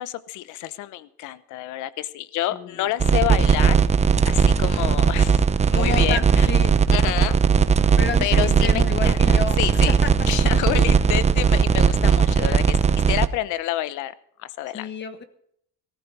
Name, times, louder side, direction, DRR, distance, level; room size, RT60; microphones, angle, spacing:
voice 1, 0.0-3.8 4.2-5.4 5.7-6.5 6.9-7.4 8.2-9.2 9.6-9.9 10.3-12.8 13.1-14.1 14.4-14.9, left 14 dB, 70° left, 16 dB, 0.9 m, -28 dB
voice 2, 2.5-2.9 5.7-6.7 8.0-9.6 9.8-10.1 11.9-12.0 14.7-15.2, left 5 dB, 35° left, 10 dB, 1.3 m, -30 dB
sound 1, 3.0-13.3, right 6 dB, 20° right, 0.7 m, -18 dB
17.5 x 14.5 x 4.2 m, 0.70 s
cardioid pair, 120°, 31 cm